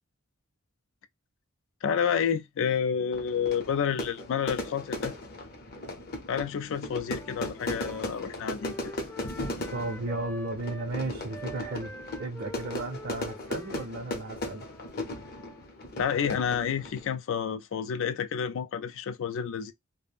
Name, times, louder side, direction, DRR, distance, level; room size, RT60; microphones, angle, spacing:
voice 1, 1.8-5.1 6.3-8.9 16.0-19.7, left 7 dB, 65° left, 0.4 m, -29 dB
Fire / Fireworks, 3.1-17.1, left 1 dB, 45° left, 0.7 m, -37 dB
Wind instrument woodwind instrument, 7.0-10.9 11.3-15.7, left 1 dB, 10° left, 0.5 m, -46 dB
voice 2, 9.7-11.9 12.2-14.7, right 2 dB, 50° right, 0.6 m, -34 dB
2.4 x 2.1 x 3.3 m
head